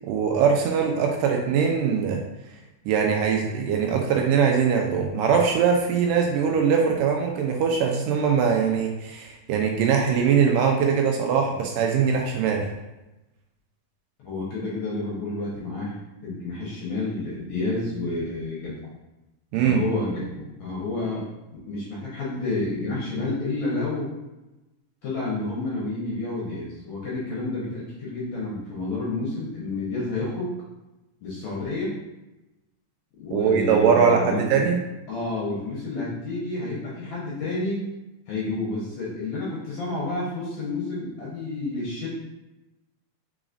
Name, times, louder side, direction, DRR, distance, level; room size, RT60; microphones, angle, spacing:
voice 1, 0.1-2.2 2.9-12.7 19.5-19.8 33.3-34.8, right 6 dB, 80° right, 1 dB, 2.1 m, -21 dB
voice 2, 14.2-18.7 19.6-21.2 21.7-24.1 25.0-30.5 31.2-32.0 33.2-34.7 35.1-37.8 38.3-42.1, left 2 dB, 70° left, -6 dB, 1.9 m, -30 dB
5.0 x 3.9 x 2.5 m, 1.0 s
omnidirectional pair, 4.1 m